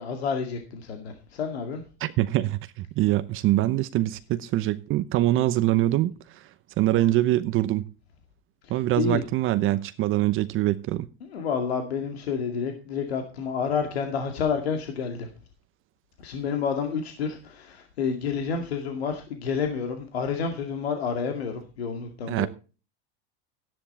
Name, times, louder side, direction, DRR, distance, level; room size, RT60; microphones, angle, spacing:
voice 1, 0.0-1.8 9.0-9.2 11.3-15.3 16.2-22.5, left 6 dB, 90° left, 2.2 m, -29 dB
voice 2, 2.0-6.5 6.8-7.8 8.7-11.1 22.3-22.5, right 15 dB, 40° right, 0.9 m, -24 dB
13.0 x 10.5 x 4.2 m
supercardioid pair, 110°, 30 cm